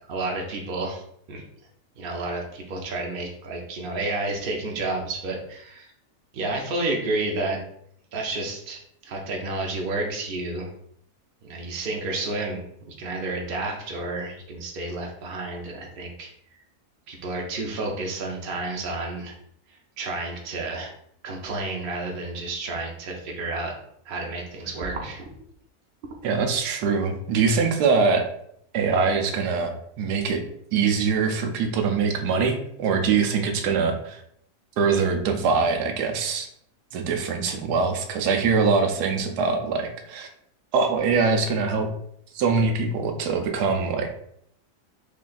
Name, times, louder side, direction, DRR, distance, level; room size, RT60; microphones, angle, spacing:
voice 1, 0.1-1.0 1.3-1.4 2.0-5.9 6.3-7.6 8.1-10.7 11.4-16.3 17.1-19.3 20.0-20.9 21.2-23.7 24.1-25.2 26.1-26.2, right 2 dB, 65° right, 0 dB, 0.5 m, -30 dB
voice 2, 26.2-28.3 28.7-30.4 30.7-34.2 34.8-36.5 36.9-40.3 40.7-41.9 42.3-44.1, right 5 dB, 90° right, 5 dB, 1.2 m, -23 dB
3.2 x 2.5 x 3.8 m, 0.69 s
omnidirectional pair, 1.7 m